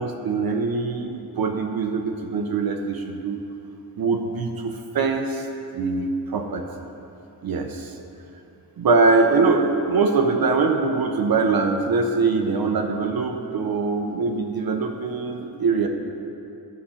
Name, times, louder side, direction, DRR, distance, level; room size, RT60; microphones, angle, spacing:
voice 1, 0.0-3.4 4.0-5.5 5.7-6.6 7.4-8.0 8.8-15.9, right 4 dB, 60° right, 4 dB, 0.7 m, -23 dB
10.5 x 5.1 x 5.6 m, 2.8 s
wide cardioid pair, 120°, 40 cm